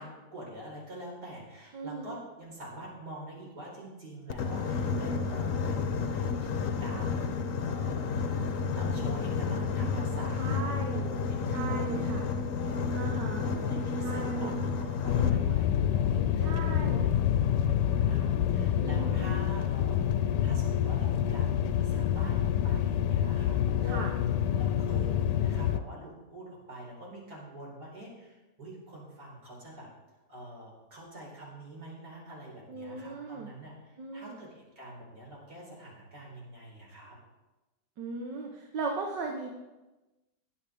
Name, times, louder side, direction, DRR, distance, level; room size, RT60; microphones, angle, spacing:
voice 1, 0.0-7.2 7.5-8.1 8.8-11.2 11.7-11.9 12.2-24.1 24.6-29.9 30.3-37.2, right 1 dB, 65° right, -3 dB, 5.1 m, -46 dB
voice 2, 1.7-2.2 10.4-11.1 11.5-12.2 12.9-13.5 14.0-14.6 15.1-15.5 16.4-17.0 18.8-19.4 23.8-24.1 32.7-33.5 34.0-34.4 38.0-39.5, right 3 dB, 85° right, 1 dB, 1.8 m, -37 dB
Boat Water vehicle, 4.3-15.3, left 4 dB, 55° left, 1.1 m, -31 dB
sound 1, 15.1-25.8, left 10 dB, 85° left, 1.2 m, -27 dB
20.0 x 8.1 x 3.5 m, 1.1 s
omnidirectional pair, 1.8 m